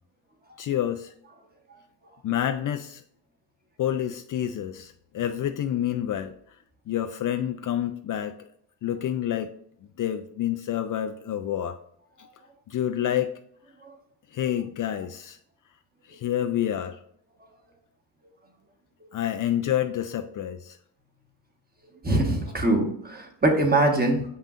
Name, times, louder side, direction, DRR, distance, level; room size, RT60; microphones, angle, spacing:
voice 1, 0.6-1.1 2.2-3.0 3.8-6.3 6.9-8.4 8.8-9.5 10.0-11.8 12.7-13.3 14.3-15.4 16.1-17.0 19.1-20.8, left 11 dB, 45° left, 8 dB, 0.5 m, -28 dB
voice 2, 22.0-24.3, right 2 dB, 20° right, 2 dB, 1.4 m, -23 dB
6.8 x 5.6 x 2.5 m, 0.68 s
cardioid pair, 95°, 45 cm